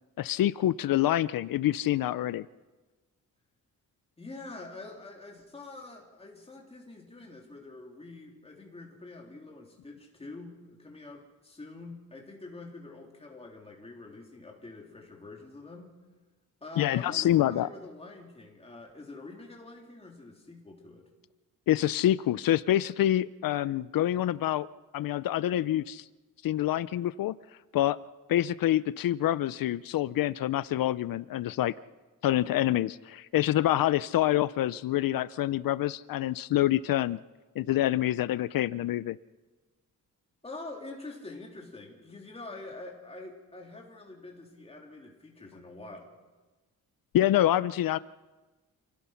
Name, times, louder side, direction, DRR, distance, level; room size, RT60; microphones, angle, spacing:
voice 1, 0.2-2.4 16.8-17.7 21.7-24.7 24.9-26.0 26.4-27.4 27.7-28.0 28.3-31.7 32.2-37.2 37.6-39.2 47.1-48.0, left 13 dB, 80° left, 18 dB, 0.6 m, -26 dB
voice 2, 4.2-15.9 16.6-21.1 40.4-46.1, left 2 dB, 15° left, 0 dB, 3.4 m, -46 dB
28.0 x 17.5 x 5.8 m, 1.2 s
wide cardioid pair, 175°, 34 cm